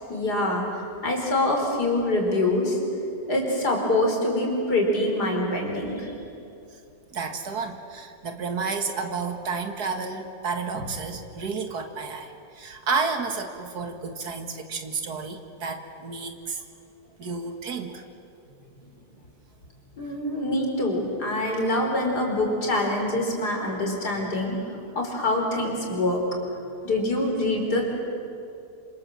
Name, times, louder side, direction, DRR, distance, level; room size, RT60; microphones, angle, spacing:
voice 1, 0.1-0.6 1.0-2.8 3.3-6.1 20.0-24.6 25.0-26.2 26.8-27.8, left 1 dB, 75° left, 1 dB, 5.3 m, -25 dB
voice 2, 7.1-16.6 17.2-18.0, right 4 dB, 70° right, 5 dB, 2.4 m, -31 dB
27.0 x 26.5 x 7.6 m, 2.6 s
omnidirectional pair, 1.8 m